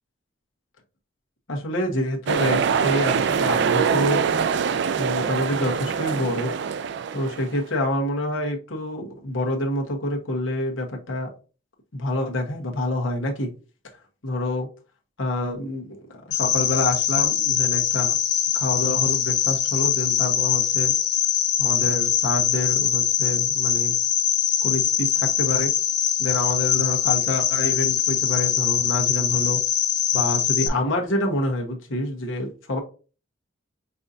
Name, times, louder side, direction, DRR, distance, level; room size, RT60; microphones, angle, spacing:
voice 1, 1.5-4.2 5.0-6.5 7.1-11.3 11.9-13.5 14.2-14.7 15.2-16.0 16.3-18.1 18.5-20.9 21.6-23.9 24.6-25.7 26.2-29.6 30.1-32.8, left 1 dB, 85° left, 1.1 m, -27 dB
sound 1, 2.3-7.6, right 6 dB, 60° right, 0.3 m, -24 dB
Cricket, 16.3-30.7, left 9 dB, 55° left, 0.6 m, -22 dB
5.5 x 2.6 x 2.6 m
head